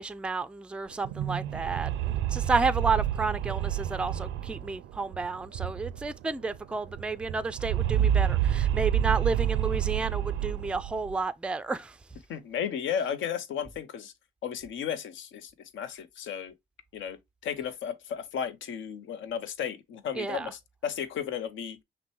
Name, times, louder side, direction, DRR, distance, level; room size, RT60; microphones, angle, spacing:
voice 1, 0.0-12.0 20.1-20.5, right 4 dB, 5° right, 0.3 m, -31 dB
sound 1, 0.9-6.2 6.5-6.6 6.8-11.2, right 10 dB, 80° right, 0.4 m, -29 dB
voice 2, 12.3-14.1 14.4-16.5 16.9-21.8, left 8 dB, 75° left, 0.8 m, -34 dB
5.9 x 2.2 x 3.0 m
cardioid pair, 90°, 20 cm